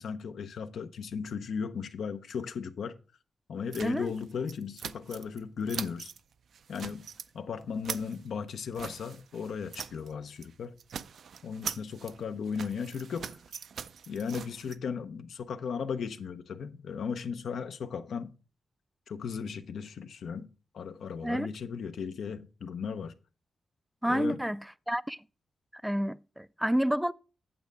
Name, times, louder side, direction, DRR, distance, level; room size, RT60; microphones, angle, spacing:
voice 1, 0.0-3.0 3.5-6.1 6.7-7.1 7.3-10.8 11.4-13.3 14.1-18.3 19.1-20.5 20.7-23.1 24.1-24.4, left 6 dB, 80° left, 0.7 m, -36 dB
sound 1, 3.7-5.4 5.7-6.2 6.5-7.3 7.6-10.1 10.4-10.5 10.8-14.8, right 7 dB, 75° right, 0.4 m, -42 dB
voice 2, 3.8-4.1 21.2-21.5 24.0-25.2 25.7-27.1, equal, 5° right, 0.3 m, -29 dB
8.8 x 7.4 x 3.4 m
cardioid pair, 85°, 0 cm